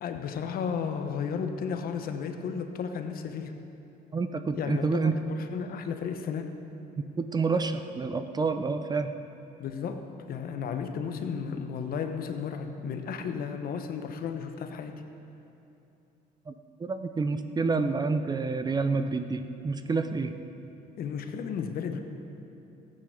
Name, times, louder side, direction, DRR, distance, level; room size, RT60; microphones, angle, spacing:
voice 1, 0.0-3.6 4.6-4.9 5.2-6.5 9.6-14.9 21.0-22.0, left 6 dB, 60° left, 6 dB, 1.1 m, -33 dB
voice 2, 4.1-5.1 7.2-9.2 16.5-16.6 16.8-20.3, right 4 dB, 25° right, 9 dB, 0.6 m, -28 dB
14.5 x 9.0 x 6.6 m, 2.8 s
cardioid pair, 110°, 17 cm